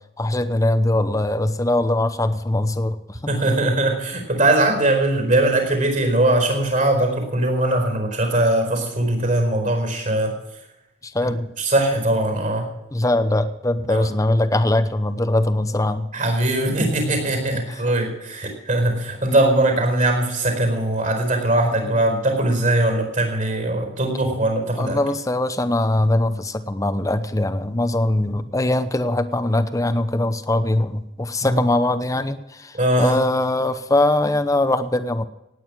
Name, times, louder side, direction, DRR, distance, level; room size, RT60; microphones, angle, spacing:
voice 1, 0.2-3.3 11.0-11.5 12.9-16.1 17.7-17.8 24.8-35.3, left 1 dB, 20° left, 11 dB, 0.8 m, -21 dB
voice 2, 3.3-10.3 11.2-11.3 11.6-12.6 13.9-14.1 16.1-25.0 31.4-31.6 32.7-33.2, right 1 dB, 45° right, 4 dB, 4.6 m, -20 dB
18.0 x 9.2 x 6.2 m, 0.89 s
head